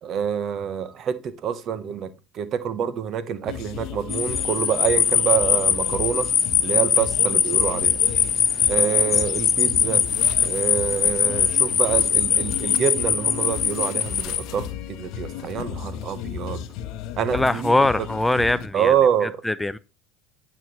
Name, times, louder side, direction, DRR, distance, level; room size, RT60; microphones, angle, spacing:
voice 1, 0.0-6.3 6.6-8.0 8.7-10.0 10.4-16.6 17.2-17.9 18.7-19.4, right 8 dB, 50° right, 1.1 m, -26 dB
sound 1, 3.5-18.7, left 10 dB, 65° left, 0.8 m, -35 dB
sound 2, 4.1-14.4, left 7 dB, 35° left, 1.1 m, -21 dB
voice 2, 17.3-18.9 19.4-19.8, left 2 dB, 10° left, 0.4 m, -21 dB
9.1 x 5.9 x 3.1 m
hypercardioid pair, 85°, 0 cm